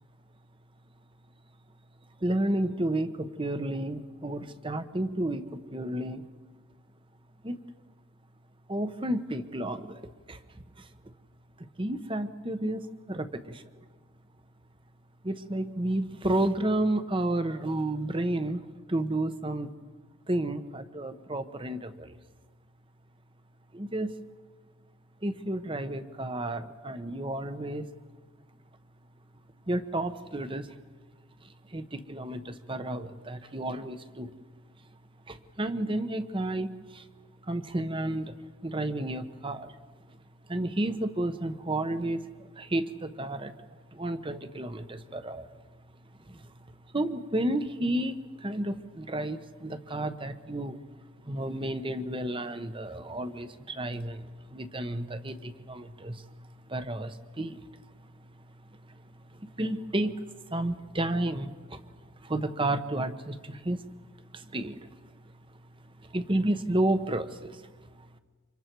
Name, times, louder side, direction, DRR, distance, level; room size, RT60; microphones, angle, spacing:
voice 1, 2.2-6.3 7.4-7.6 8.7-10.9 11.8-13.6 15.2-18.6 18.9-19.7 20.3-22.2 23.7-24.2 25.2-27.9 29.7-30.7 31.4-34.3 35.3-37.0 37.4-38.4 38.6-39.7 40.5-43.5 43.9-45.5 46.3-46.5 46.9-50.8 51.2-54.2 54.5-56.2 56.7-57.6 58.9-59.0 59.3-60.2 60.5-61.8 62.2-63.8 64.3-64.9 66.0-67.7 68.0-68.1, right 1 dB, 25° right, 10 dB, 1.1 m, -31 dB
30.0 x 26.5 x 4.6 m, 1.4 s
head